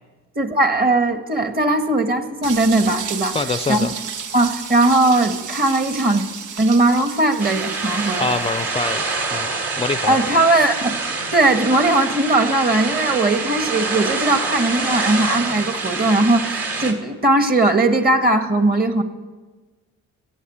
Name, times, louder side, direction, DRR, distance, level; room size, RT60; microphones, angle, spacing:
voice 1, 0.4-3.4 3.7-3.8 4.3-6.2 6.6-8.3 10.1-11.0 11.3-19.0, right 2 dB, 30° right, 7 dB, 1.6 m, -18 dB
sound 1, 2.4-9.3, right 7 dB, 80° right, 1.0 m, -33 dB
voice 2, 3.3-3.9 8.2-9.0 9.3-9.5 9.8-10.2, left 3 dB, 20° left, 11 dB, 0.5 m, -24 dB
sound 2, 7.4-16.9, right 3 dB, 50° right, 2.5 m, -26 dB
14.5 x 8.8 x 8.6 m, 1.3 s
cardioid pair, 90°, 30 cm